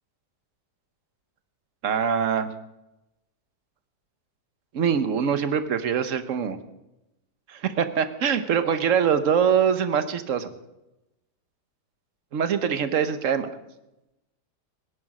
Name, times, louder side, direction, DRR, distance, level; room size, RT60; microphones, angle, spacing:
voice 1, 1.8-2.5 4.7-6.6 7.5-10.5 12.3-13.5, right 7 dB, 55° right, 11 dB, 1.3 m, -23 dB
18.0 x 10.5 x 6.0 m, 0.94 s
omnidirectional pair, 1.8 m